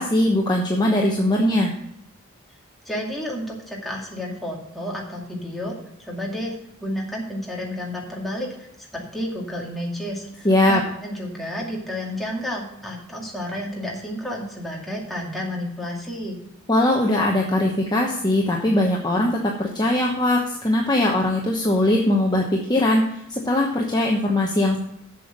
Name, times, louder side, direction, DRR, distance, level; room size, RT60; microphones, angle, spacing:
voice 1, 0.0-1.7 10.4-10.8 16.7-23.0 23.3-24.8, left 1 dB, 20° left, -1 dB, 1.0 m, -20 dB
voice 2, 2.9-5.8 6.1-6.6 6.8-8.7 8.9-16.4, equal, ahead, -3 dB, 2.2 m, -31 dB
7.7 x 7.0 x 6.6 m, 0.79 s
head